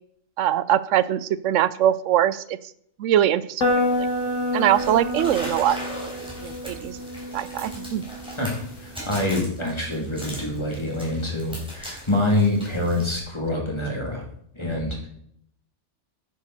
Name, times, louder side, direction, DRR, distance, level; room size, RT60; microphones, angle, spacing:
voice 1, 0.4-2.6 3.0-3.6 3.9-4.1 4.5-5.8 6.4-7.0 7.3-8.0, right 11 dB, 85° right, 16 dB, 0.9 m, -22 dB
sound 1, 3.6-9.4, left 1 dB, 80° left, 2.7 m, -29 dB
sound 2, 4.7-13.2, equal, 5° right, 3.9 m, -39 dB
voice 2, 8.4-14.2 14.5-15.1, left 2 dB, 20° left, 0 dB, 2.8 m, -26 dB
10.5 x 9.6 x 4.1 m, 0.69 s
omnidirectional pair, 1.3 m